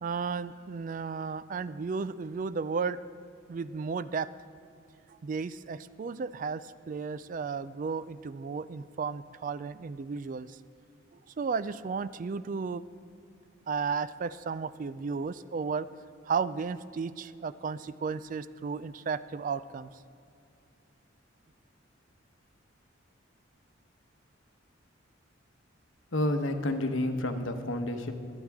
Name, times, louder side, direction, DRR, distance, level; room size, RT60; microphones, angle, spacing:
voice 1, 0.0-3.0 3.5-4.3 5.1-10.6 11.4-12.8 13.7-15.9 16.2-19.9, right 5 dB, 40° right, 15 dB, 0.3 m, -34 dB
voice 2, 26.1-28.1, left 1 dB, 75° left, 6 dB, 1.1 m, -29 dB
22.5 x 9.0 x 3.6 m, 2.4 s
head